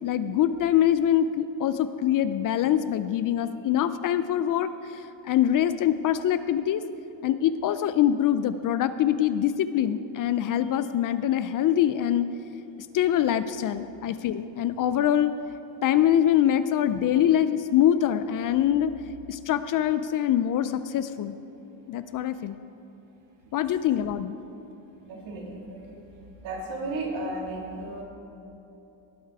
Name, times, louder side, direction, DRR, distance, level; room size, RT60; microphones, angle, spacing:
voice 1, 0.0-6.8 7.2-12.3 12.9-15.3 15.8-18.9 19.3-21.3 21.9-22.6 23.5-24.4, left 10 dB, 45° left, 12 dB, 0.4 m, -24 dB
voice 2, 25.0-26.0 26.4-28.0, right 2 dB, 70° right, -2 dB, 3.1 m, -34 dB
18.5 x 8.1 x 4.7 m, 3.0 s
cardioid pair, 135°, 48 cm